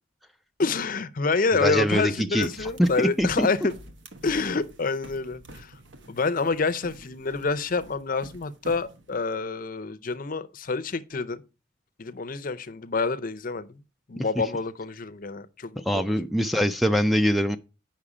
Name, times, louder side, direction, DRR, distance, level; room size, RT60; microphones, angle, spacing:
voice 1, 0.6-3.7 4.2-5.7 6.1-11.4 12.0-13.8 14.1-16.1, left 4 dB, 45° left, 0.6 m, -27 dB
voice 2, 1.6-3.5 15.9-17.6, equal, ahead, 0.3 m, -23 dB
sound 1, 2.4-9.2, right 1 dB, 65° right, 1.1 m, -46 dB
8.5 x 5.8 x 4.8 m
head